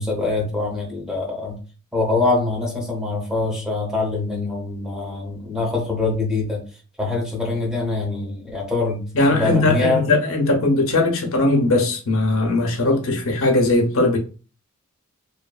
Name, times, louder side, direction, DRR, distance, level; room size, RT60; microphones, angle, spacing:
voice 1, 0.0-1.6 1.9-6.6 7.0-10.1, left 3 dB, 5° right, 0.7 m, -24 dB
voice 2, 9.1-14.2, left 2 dB, 65° left, 0.6 m, -19 dB
2.7 x 2.5 x 2.3 m
head